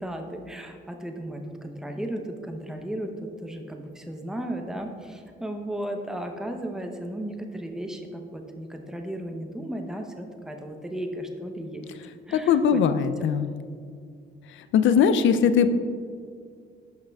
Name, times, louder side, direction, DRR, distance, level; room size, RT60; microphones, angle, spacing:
voice 1, 0.0-11.9 12.3-12.8 15.7-15.8, right 1 dB, 5° right, 4 dB, 0.7 m, -35 dB
voice 2, 12.3-13.5 14.7-15.8, left 7 dB, 75° left, 11 dB, 0.4 m, -20 dB
11.5 x 5.7 x 2.3 m, 2.2 s
cardioid pair, 90°, 20 cm